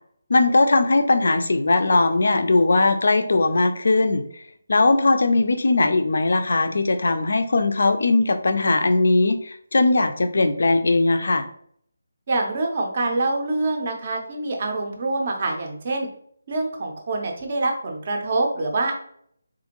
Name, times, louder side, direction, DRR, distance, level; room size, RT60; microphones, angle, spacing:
voice 1, 0.3-4.2 4.7-11.5, left 2 dB, 50° left, 8 dB, 0.4 m, -19 dB
voice 2, 12.3-16.1 16.5-18.9, right 2 dB, 25° right, 2 dB, 0.5 m, -25 dB
3.5 x 2.5 x 2.9 m, 0.65 s
figure-of-eight pair, 180°, 0 cm